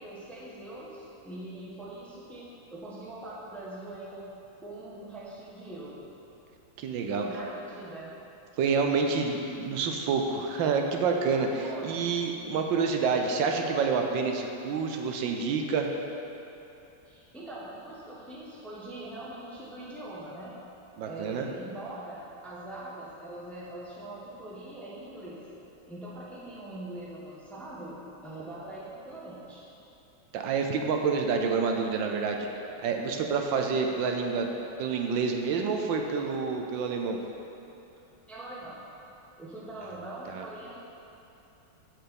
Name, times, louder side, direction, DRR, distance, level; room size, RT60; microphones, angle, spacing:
voice 1, 0.0-4.3 4.6-6.0 7.1-8.1 11.6-11.9 17.0-20.6 21.0-25.4 25.9-29.7 38.3-38.8 39.4-40.8, right 1 dB, ahead, -6 dB, 0.7 m, -42 dB
voice 2, 6.8-7.2 8.6-15.9 21.0-21.5 30.3-32.5 32.8-34.5 34.8-37.2 40.3-40.4, right 5 dB, 70° right, 3 dB, 1.3 m, -28 dB
7.7 x 4.6 x 6.9 m, 2.9 s
omnidirectional pair, 2.3 m